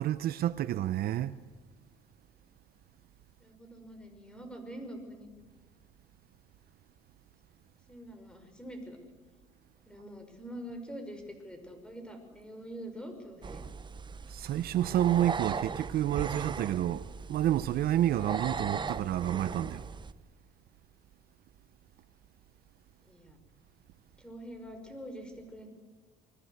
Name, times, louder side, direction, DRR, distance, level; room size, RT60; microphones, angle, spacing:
voice 1, 0.0-1.4 14.3-19.8, right 12 dB, 65° right, 0.7 m, -29 dB
voice 2, 3.4-5.3 7.9-9.0 9.9-13.6 23.0-23.4 24.2-25.7, equal, 5° left, 5.5 m, -45 dB
sound 1, 13.4-20.1, right 5 dB, 25° right, 0.9 m, -38 dB
28.5 x 21.0 x 8.0 m
cardioid pair, 110°, 17 cm